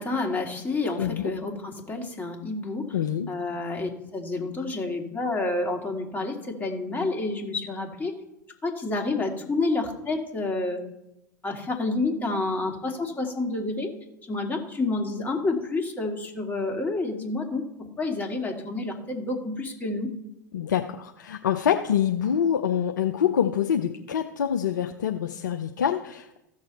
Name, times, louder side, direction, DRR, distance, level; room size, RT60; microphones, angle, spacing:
voice 1, 0.0-2.9 3.3-8.1 8.6-10.8 11.4-13.9 14.3-20.1, left 2 dB, 15° left, 1 dB, 2.2 m, -29 dB
voice 2, 1.0-1.3 2.9-3.3 20.5-26.4, left 9 dB, 75° left, 5 dB, 0.6 m, -25 dB
15.0 x 6.4 x 4.1 m, 0.87 s
hypercardioid pair, 85°, 10 cm